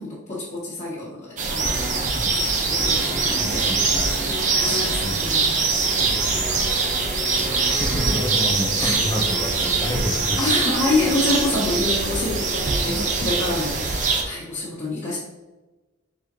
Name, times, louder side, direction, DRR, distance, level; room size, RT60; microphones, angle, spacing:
voice 1, 0.0-1.8 2.2-3.7 4.2-5.8 8.8-9.0 10.4-15.2, left 2 dB, 35° left, -10 dB, 1.2 m, -27 dB
sound 1, 1.4-14.2, right 4 dB, 40° right, 0.6 m, -23 dB
sound 2, 1.6-11.6, equal, 5° right, 1.0 m, -35 dB
voice 2, 3.3-4.1 4.6-5.2 6.0-7.0 7.8-10.5 12.9-13.6, left 1 dB, 20° left, 3 dB, 0.5 m, -31 dB
4.9 x 3.5 x 3.0 m, 1.1 s
head